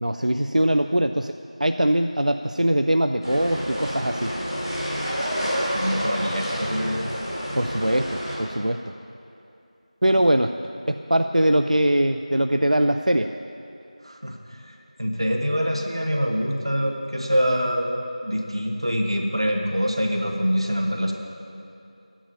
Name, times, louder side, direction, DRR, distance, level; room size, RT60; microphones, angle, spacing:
voice 1, 0.0-1.3 1.6-4.3 7.6-8.8 10.0-10.6 10.9-13.3, right 1 dB, 75° right, 7 dB, 0.4 m, -22 dB
sound 1, 3.2-8.3, equal, 30° left, 3.4 m, -28 dB
voice 2, 5.7-7.0 10.1-10.3 14.0-17.9 18.2-21.1, equal, 45° right, 2 dB, 1.3 m, -25 dB
11.5 x 10.0 x 5.5 m, 2.7 s
figure-of-eight pair, 180°, 4 cm